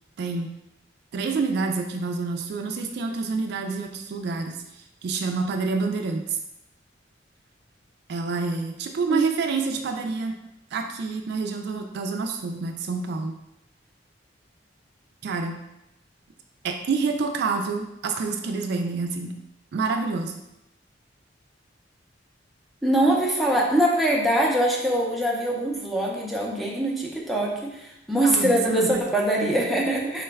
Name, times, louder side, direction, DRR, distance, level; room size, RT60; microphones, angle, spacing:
voice 1, 0.2-0.5 1.1-4.6 5.0-6.4 8.1-10.4 10.7-13.4 15.2-15.6 16.6-19.3 19.7-20.4 28.2-29.0, right 4 dB, 60° right, 4 dB, 0.3 m, -27 dB
voice 2, 22.8-30.2, right 1 dB, ahead, -4 dB, 0.5 m, -23 dB
3.8 x 2.2 x 3.4 m, 0.87 s
head